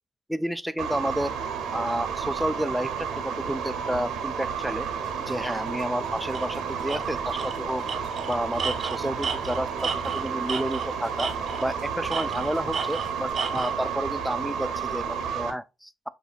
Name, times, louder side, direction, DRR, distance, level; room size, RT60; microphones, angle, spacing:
voice 1, 0.3-1.3 1.7-4.9 5.2-7.8 8.3-11.3 11.6-16.1, equal, ahead, 0.3 m, -30 dB
sound 1, 0.8-15.5, right 6 dB, 85° right, 1.0 m, -31 dB
sound 2, 5.0-13.3, equal, 65° left, 2.6 m, -46 dB
Tools, 6.3-6.5 6.9-7.0 7.4-7.6 7.9-10.9 11.2-11.7 12.1-13.7, right 5 dB, 50° right, 0.7 m, -33 dB
5.6 x 2.7 x 2.4 m
cardioid pair, 90°, 0 cm